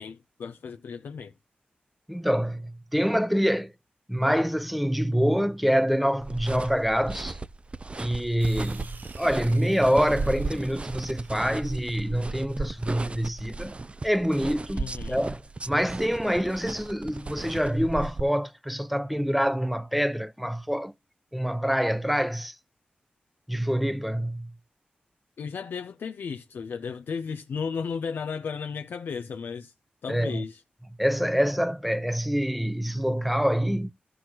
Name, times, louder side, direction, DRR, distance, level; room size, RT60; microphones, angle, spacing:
voice 1, 0.0-1.3 14.8-15.2 25.4-29.7 30.0-30.6, left 6 dB, 90° left, 0.6 m, -34 dB
voice 2, 2.1-3.7 4.1-7.4 8.0-13.8 14.0-15.4 15.7-20.9 21.3-22.6 23.5-24.5 30.1-30.4 31.0-33.9, equal, ahead, 0.8 m, -26 dB
sound 1, 6.2-18.2, right 3 dB, 35° right, 0.5 m, -36 dB
sound 2, 8.4-12.1, right 4 dB, 70° right, 1.2 m, -50 dB
14.0 x 6.2 x 3.0 m
cardioid pair, 55°, 3 cm